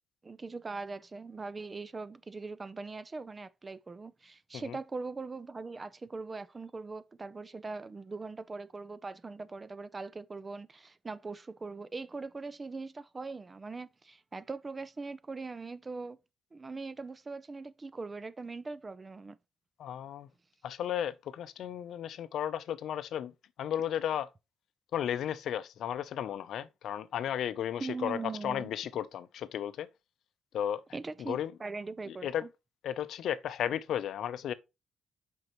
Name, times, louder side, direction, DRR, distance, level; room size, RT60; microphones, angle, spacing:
voice 1, 0.2-16.2 16.5-19.4 27.8-28.7 30.9-32.5, right 3 dB, 25° right, 0.5 m, -41 dB
voice 2, 19.8-20.3 20.6-23.3 23.6-24.3 24.9-29.9 30.5-30.8 31.2-31.5 32.1-32.5 32.8-34.5, left 10 dB, 70° left, 0.6 m, -34 dB
7.8 x 5.3 x 3.0 m
cardioid pair, 90°, 0 cm